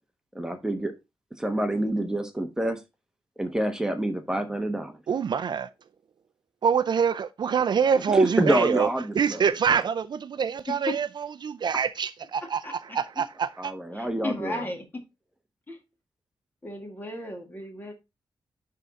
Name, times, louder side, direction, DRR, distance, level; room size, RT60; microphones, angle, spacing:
voice 1, 0.3-0.9 1.4-2.8 3.4-5.0 7.9-9.8 13.6-14.6, right 1 dB, 5° right, 1.1 m, -27 dB
voice 2, 5.1-5.7 6.6-8.9 9.2-11.1 11.4-12.6 13.0-13.7, right 7 dB, 55° right, 0.4 m, -25 dB
voice 3, 10.7-11.0 12.4-13.0 13.9-15.0 15.7-15.8 16.6-17.9, left 1 dB, 20° left, 1.8 m, -35 dB
10.5 x 3.7 x 4.0 m
wide cardioid pair, 145°, 9 cm